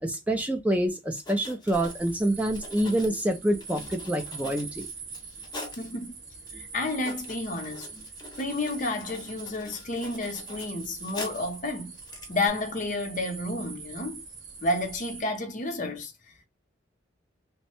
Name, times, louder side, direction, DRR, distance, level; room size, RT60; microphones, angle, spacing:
voice 1, 0.0-4.9, right 1 dB, 10° right, 0.4 m, -27 dB
Writing, 1.1-5.9 6.5-6.6 6.8-11.6 11.9-12.5, left 2 dB, 20° left, 0.9 m, -44 dB
sound 1, 1.7-15.2, right 4 dB, 65° right, 1.1 m, -43 dB
voice 2, 5.8-6.2 6.5-7.9 8.4-11.9 12.3-14.2 14.6-16.1, left 2 dB, 45° left, 0.7 m, -31 dB
3.1 x 2.1 x 2.9 m
head